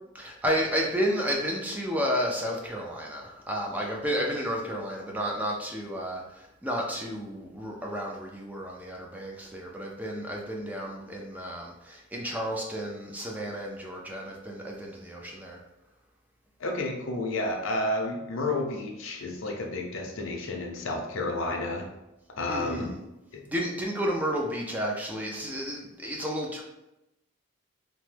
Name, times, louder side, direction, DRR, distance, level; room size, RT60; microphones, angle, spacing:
voice 1, 0.1-15.6 22.5-23.0 23.5-26.6, equal, 10° right, -1 dB, 0.3 m, -32 dB
voice 2, 16.6-21.9 22.4-22.9 23.3-23.4, left 2 dB, 70° left, 2 dB, 0.6 m, -31 dB
2.9 x 2.1 x 3.2 m, 0.91 s
head